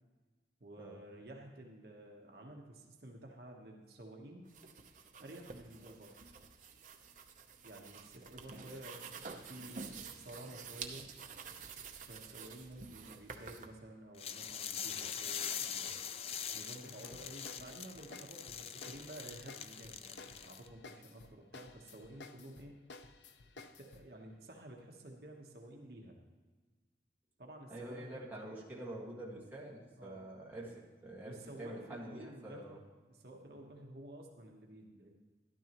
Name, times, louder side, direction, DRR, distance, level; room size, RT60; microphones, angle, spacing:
voice 1, 0.6-4.5 5.2-6.3 7.6-11.1 12.1-16.0 16.5-22.8 23.8-26.2 27.4-28.2 30.0-30.2 31.2-32.8 33.1-35.2, right 1 dB, 60° right, 1 dB, 1.1 m, -52 dB
sound 1, 4.4-13.7, right 5 dB, 45° right, 0.7 m, -49 dB
sound 2, 14.2-20.7, left 8 dB, 35° left, 0.3 m, -43 dB
sound 3, 16.8-24.1, left 3 dB, 80° left, 0.6 m, -55 dB
voice 2, 27.7-32.8, right 1 dB, 10° right, -5 dB, 1.8 m, -46 dB
12.5 x 11.5 x 3.0 m, 1.4 s
head